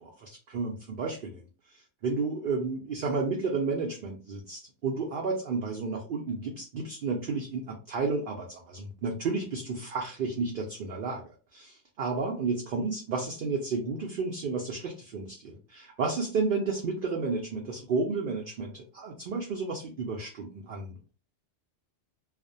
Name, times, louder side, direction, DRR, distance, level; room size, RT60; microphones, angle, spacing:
voice 1, 0.0-1.4 1.7-21.1, right 4 dB, 60° right, 0 dB, 0.6 m, -32 dB
2.4 x 2.0 x 2.5 m, 0.34 s
omnidirectional pair, 1.2 m